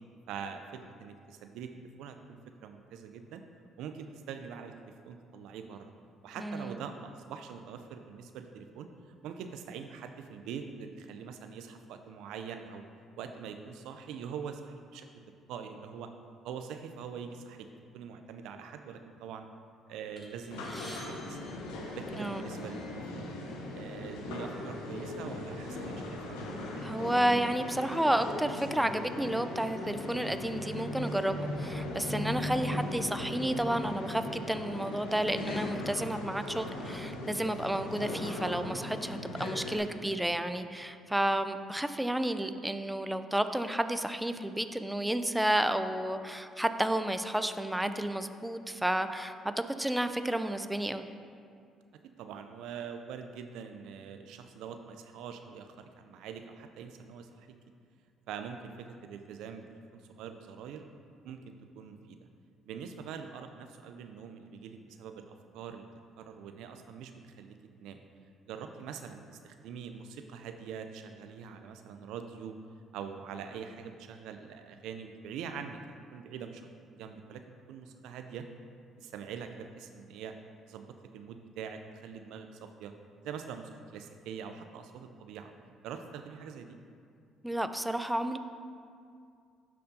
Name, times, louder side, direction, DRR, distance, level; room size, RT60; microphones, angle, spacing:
voice 1, 0.3-3.4 3.8-5.9 6.2-8.9 9.2-12.8 13.2-15.1 15.5-16.1 16.4-17.7 17.9-19.5 19.9-21.4 21.9-23.3 23.7-26.4 52.2-57.5 58.3-60.9 61.2-62.2 62.7-65.9 66.2-68.0 68.5-72.6 72.9-77.4 77.7-78.4 79.0-80.3 80.7-80.9 81.1-82.9 83.2-85.5 85.8-86.8, right 7 dB, 75° right, 7 dB, 0.4 m, -44 dB
voice 2, 6.4-6.8 22.2-22.4 26.8-51.0 87.4-88.4, right 1 dB, 5° right, 9 dB, 0.4 m, -31 dB
sound 1, 20.2-22.5 23.3-23.5 23.8-24.0 24.8-25.0 25.5-26.6, left 1 dB, 20° left, 1.5 m, -51 dB
sound 2, 20.5-39.8, left 2 dB, 85° left, 0.7 m, -38 dB
11.5 x 4.3 x 2.7 m, 2.4 s
hypercardioid pair, 60°, 0 cm